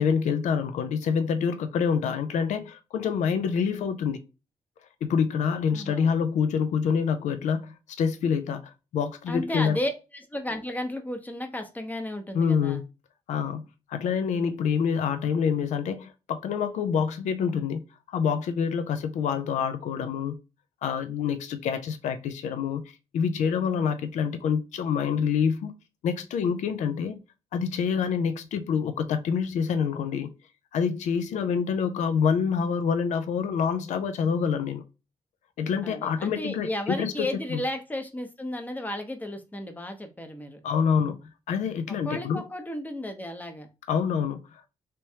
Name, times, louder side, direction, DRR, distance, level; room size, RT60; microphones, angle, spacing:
voice 1, 0.0-4.2 5.0-9.8 12.3-12.8 13.3-13.6 13.9-17.8 18.1-20.4 20.8-22.8 23.1-25.7 26.0-27.2 27.5-30.3 30.7-34.8 35.6-37.6 40.6-41.2 41.5-42.4 43.9-44.7, left 6 dB, 85° left, 0.4 m, -26 dB
voice 2, 5.7-6.1 9.3-12.8 35.8-40.6 42.0-43.7, left 1 dB, 15° left, 0.7 m, -33 dB
3.4 x 3.0 x 2.8 m
cardioid pair, 100°, 12 cm